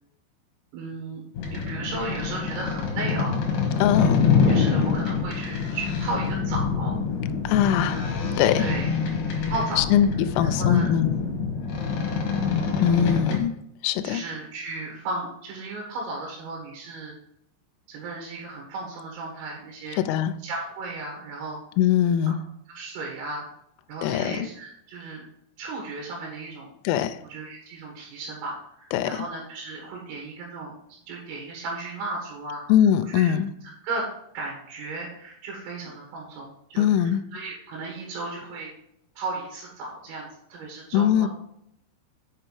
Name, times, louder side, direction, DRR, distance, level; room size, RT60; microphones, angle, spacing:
voice 1, 0.7-1.2 1.5-3.3 4.5-7.0 7.7-8.1 8.6-8.9 9.5-9.9 10.4-10.9 11.7-12.0 14.0-17.1 17.9-20.0 20.4-21.6 22.3-22.4 22.7-23.5 23.9-25.3 25.6-26.7 27.3-32.6 33.1-33.3 33.8-34.1 34.3-38.7 39.2-41.3, right 3 dB, 85° right, -1 dB, 4.2 m, -35 dB
sound 1, 1.3-13.4, left 5 dB, 65° left, 2.2 m, -25 dB
voice 2, 3.8-4.3 7.4-8.0 8.4-8.6 9.8-11.1 12.8-13.5 13.8-14.2 20.0-20.3 21.8-22.4 24.0-24.5 26.8-27.2 28.9-29.1 32.7-33.5 36.8-37.2 40.9-41.3, left 10 dB, 85° left, 11 dB, 3.0 m, -21 dB
7.6 x 5.6 x 4.7 m, 0.74 s
omnidirectional pair, 5.9 m